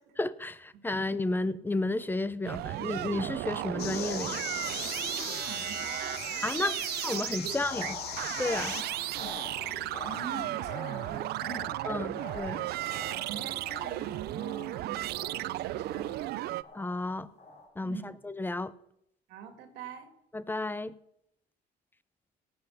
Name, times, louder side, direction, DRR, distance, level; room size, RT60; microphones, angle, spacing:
voice 1, 0.2-4.4 6.4-6.8 7.0-8.0 8.4-8.7 11.9-12.7 16.7-17.3 17.8-18.7 20.3-20.9, left 2 dB, 10° left, 16 dB, 0.5 m, -32 dB
sound 1, 2.4-16.6, right 16 dB, 70° right, 0.4 m, -35 dB
sound 2, 3.8-8.8, left 13 dB, 70° left, 0.8 m, -40 dB
voice 2, 4.6-7.6 8.6-8.8 9.6-12.2 13.3-16.4 17.8-18.2 19.3-20.1, right 6 dB, 85° right, 7 dB, 2.3 m, -44 dB
sound 3, 7.5-17.7, left 2 dB, 40° left, 5.1 m, -45 dB
17.5 x 7.8 x 5.7 m, 0.77 s
cardioid pair, 110°, 17 cm